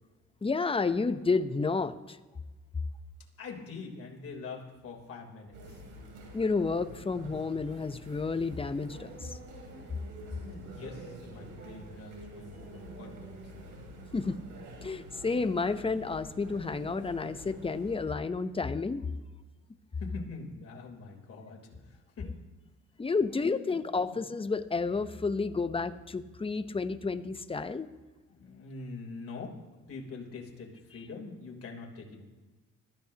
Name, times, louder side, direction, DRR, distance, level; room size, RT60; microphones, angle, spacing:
voice 1, 0.4-2.2 6.3-9.4 14.1-14.4 14.8-19.1 23.0-27.9, left 4 dB, 20° left, 11 dB, 0.7 m, -31 dB
voice 2, 3.4-5.8 10.2-13.7 20.0-22.3 23.3-23.8 24.0-24.2 28.3-29.6 29.9-32.2, left 4 dB, 50° left, -1 dB, 3.5 m, -44 dB
sound 1, 5.5-18.0, right 1 dB, 85° right, 2.8 m, -47 dB
21.0 x 14.0 x 2.9 m, 1.2 s
cardioid pair, 90°, 30 cm